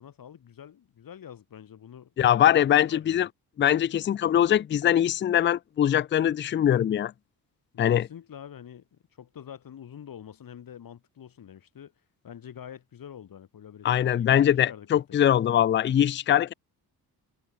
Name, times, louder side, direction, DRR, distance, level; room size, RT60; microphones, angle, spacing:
voice 1, 0.0-3.3 7.7-11.9 12.2-15.2, left 9 dB, 60° left, 4.0 m, -46 dB
voice 2, 2.2-3.3 3.6-7.1 7.8-8.1 13.8-16.5, left 10 dB, 30° left, 0.4 m, -22 dB
wide cardioid pair, 140°, 38 cm